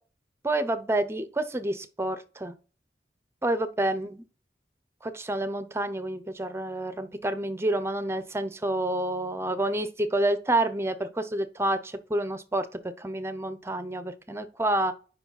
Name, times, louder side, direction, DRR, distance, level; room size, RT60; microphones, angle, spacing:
voice 1, 0.4-2.5 3.4-4.2 5.0-12.7 13.0-14.9, right 1 dB, 15° right, 0.7 m, -28 dB
5.3 x 4.8 x 5.8 m
head